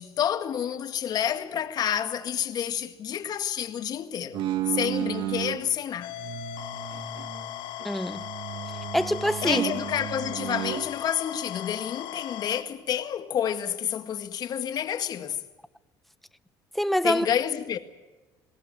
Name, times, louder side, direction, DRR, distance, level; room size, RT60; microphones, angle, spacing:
voice 1, 0.0-4.4 4.7-6.2 9.4-15.4 17.0-17.8, left 9 dB, 50° left, 1.9 m, -29 dB
sound 1, 4.3-5.6 6.1-7.9 8.1-10.8, right 11 dB, 70° right, 1.8 m, -33 dB
sound 2, 6.0-12.6, left 12 dB, 85° left, 1.6 m, -38 dB
voice 2, 7.8-8.3 8.9-9.6 16.7-17.3, equal, ahead, 0.8 m, -25 dB
22.0 x 18.0 x 8.8 m
cardioid pair, 105°, 8 cm